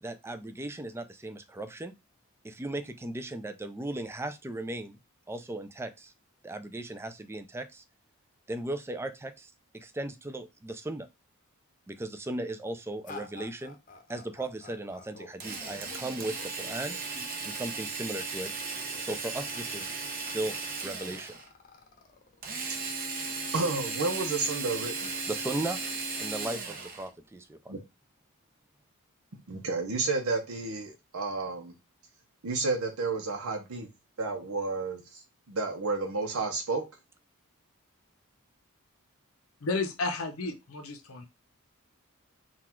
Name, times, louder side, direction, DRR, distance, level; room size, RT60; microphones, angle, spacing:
voice 1, 0.0-1.9 2.4-5.0 5.3-6.1 6.4-7.8 8.5-11.1 11.9-13.8 14.1-17.0 17.3-18.5 19.0-20.5 20.8-21.4 25.3-25.8 26.2-27.8, right 1 dB, 10° right, 0.4 m, -37 dB
sound 1, 13.0-23.0, left 4 dB, 40° left, 0.7 m, -50 dB
Drill, 15.4-21.5 22.4-27.1, right 4 dB, 45° right, 0.9 m, -36 dB
voice 2, 23.5-25.1 27.7-27.8 29.5-31.7 32.4-33.9 34.2-35.2 35.5-36.8, right 3 dB, 75° right, 0.8 m, -31 dB
voice 3, 39.6-41.3, left 3 dB, 70° left, 0.7 m, -32 dB
3.9 x 2.4 x 4.4 m
head